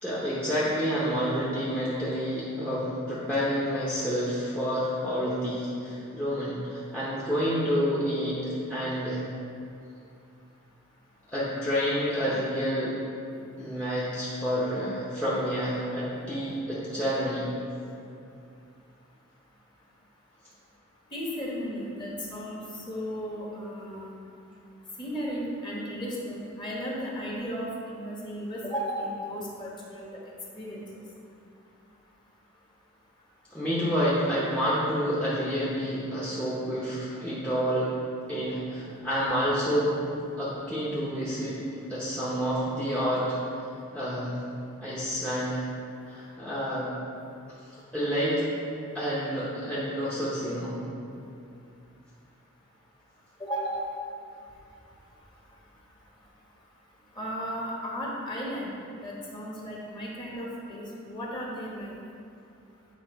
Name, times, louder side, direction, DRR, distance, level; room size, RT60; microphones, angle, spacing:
voice 1, 0.0-9.2 11.3-12.9 13.6-17.5 33.5-38.0 38.3-40.0 40.4-41.6 41.9-43.4 43.9-44.4 44.8-45.6 46.1-46.9 47.9-48.5 48.9-50.8, equal, 5° left, -8 dB, 0.9 m, -29 dB
voice 2, 21.1-24.2 25.0-30.2 30.5-30.8 53.4-53.9 57.1-58.7 59.0-61.9, equal, 20° left, -4 dB, 1.3 m, -35 dB
8.1 x 3.7 x 5.1 m, 2.6 s
head